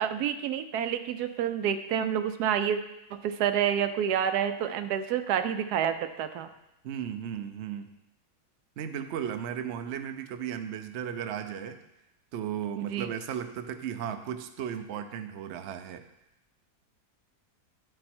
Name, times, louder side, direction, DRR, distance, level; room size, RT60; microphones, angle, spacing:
voice 1, 0.0-2.8 3.1-6.5 12.8-13.1, right 9 dB, 80° right, 10 dB, 1.1 m, -28 dB
voice 2, 6.8-7.9 8.8-11.8 12.3-16.0, right 9 dB, 65° right, 8 dB, 0.7 m, -35 dB
11.0 x 4.3 x 4.3 m, 0.88 s
omnidirectional pair, 1.7 m